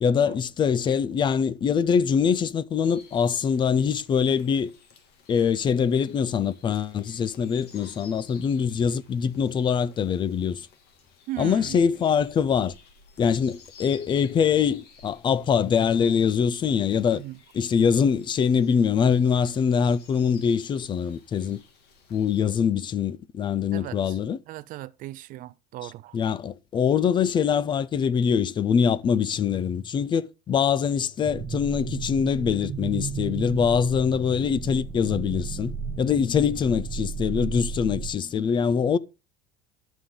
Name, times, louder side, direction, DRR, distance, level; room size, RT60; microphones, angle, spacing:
voice 1, 0.0-4.7 5.3-10.7 11.4-12.7 13.2-17.2 17.5-21.6 22.1-24.4 26.1-39.0, left 7 dB, 25° left, 0.4 m, -23 dB
sound 1, 2.8-22.4, left 5 dB, 55° left, 1.9 m, -54 dB
voice 2, 11.3-11.8 17.1-17.4 23.7-24.2 24.5-26.2, right 16 dB, 45° right, 0.4 m, -37 dB
sound 2, 31.2-38.1, right 6 dB, 20° right, 1.7 m, -34 dB
11.0 x 7.0 x 3.7 m
cardioid pair, 140°, 20 cm